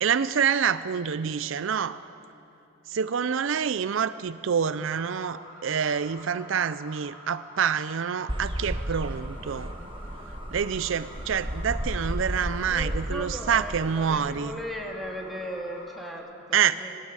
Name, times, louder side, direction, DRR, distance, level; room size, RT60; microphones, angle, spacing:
voice 1, 0.0-2.0 2.9-9.7 10.5-14.5 16.5-16.8, right 7 dB, 70° right, 14 dB, 0.5 m, -27 dB
sound 1, 4.7-16.2, left 1 dB, 85° left, 5.9 m, -47 dB
sound 2, 8.3-14.4, equal, 25° right, 1.3 m, -34 dB
voice 2, 12.7-17.0, equal, ahead, 0 dB, 2.5 m, -37 dB
21.5 x 16.0 x 9.0 m, 2.8 s
head